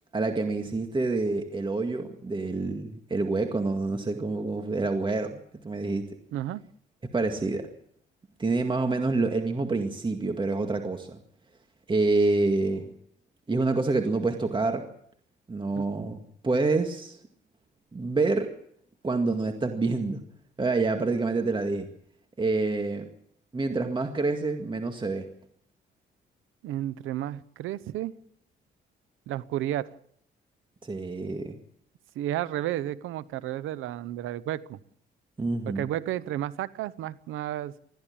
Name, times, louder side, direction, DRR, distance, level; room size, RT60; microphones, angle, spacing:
voice 1, 0.1-6.1 7.1-7.7 8.4-11.2 11.9-12.9 13.5-14.8 15.5-17.2 17.9-18.5 19.0-20.2 20.6-21.9 22.4-23.1 23.5-25.3 30.8-31.6 35.4-35.9, right 3 dB, 25° right, 5 dB, 2.1 m, -27 dB
voice 2, 26.6-28.1 29.3-29.9 32.2-34.8 35.7-37.8, right 13 dB, 90° right, 18 dB, 0.9 m, -32 dB
21.0 x 14.5 x 8.8 m, 0.67 s
cardioid pair, 90°, 20 cm